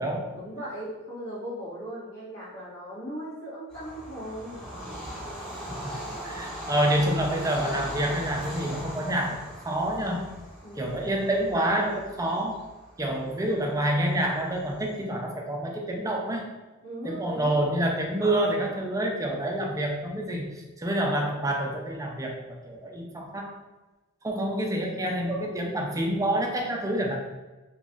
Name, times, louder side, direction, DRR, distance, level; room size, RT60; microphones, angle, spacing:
voice 1, 0.3-4.7 6.0-6.1 10.6-11.0 16.8-17.6 18.2-18.5, equal, 70° left, -10 dB, 1.4 m, -38 dB
Bird vocalization bird call bird song / Train, 3.7-14.9, equal, 5° left, 1.1 m, -39 dB
voice 2, 5.7-6.0 6.2-9.4 9.6-10.3 10.8-12.6 13.0-16.4 17.0-20.5 20.8-22.4 22.6-23.5 24.2-27.2, right 1 dB, 15° right, 1 dB, 0.4 m, -27 dB
3.0 x 2.4 x 3.8 m, 1.2 s
head